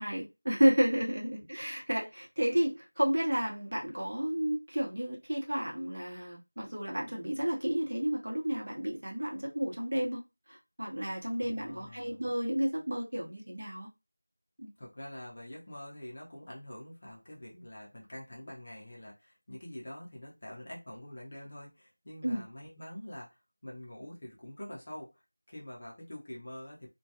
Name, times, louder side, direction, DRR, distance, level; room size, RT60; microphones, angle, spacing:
voice 1, 0.0-10.2 10.5-13.9 14.6-14.7 22.2-22.4, equal, 50° right, 0.9 m, -31 dB
voice 2, 11.4-12.2 14.8-23.4 23.6-25.2 25.5-26.9, left 1 dB, 25° left, 0.6 m, -46 dB
2.2 x 2.2 x 2.8 m
figure-of-eight pair, 180°, 0 cm